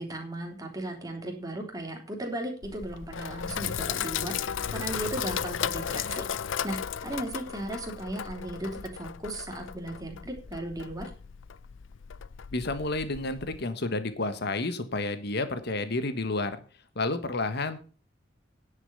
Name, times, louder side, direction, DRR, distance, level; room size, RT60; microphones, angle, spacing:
voice 1, 0.0-6.2 6.6-11.1, right 1 dB, 20° right, 2 dB, 3.1 m, -36 dB
Sink (filling or washing), 2.6-13.6, left 8 dB, 80° left, 0.5 m, -35 dB
voice 2, 12.5-16.6 16.9-17.8, left 2 dB, 60° left, 10 dB, 1.4 m, -30 dB
9.9 x 7.4 x 6.8 m, 0.37 s
head